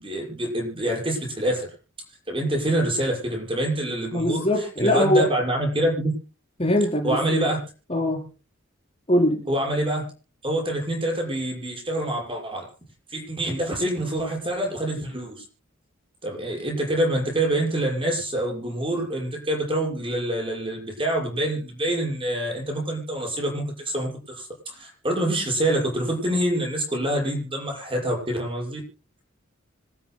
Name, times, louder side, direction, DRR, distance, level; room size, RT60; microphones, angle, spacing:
voice 1, 0.0-1.7 2.3-6.1 7.0-7.6 9.5-10.1 10.4-12.7 13.1-15.4 16.2-28.8, right 1 dB, 25° right, -1 dB, 6.3 m, -26 dB
voice 2, 4.1-5.3 6.6-7.5 7.9-8.2 9.1-9.4, left 1 dB, 30° left, 1 dB, 4.7 m, -22 dB
26.5 x 13.0 x 2.3 m, 0.34 s
head